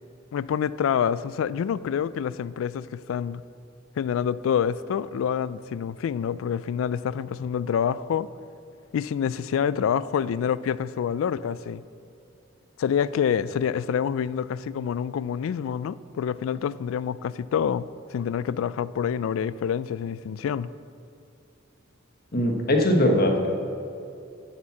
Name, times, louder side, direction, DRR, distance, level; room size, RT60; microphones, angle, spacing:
voice 1, 0.3-3.4 4.0-8.3 8.9-11.8 12.8-20.7, left 8 dB, 85° left, 17 dB, 0.3 m, -27 dB
voice 2, 22.3-23.5, left 1 dB, 50° left, 2 dB, 1.2 m, -21 dB
11.0 x 4.4 x 7.1 m, 2.6 s
head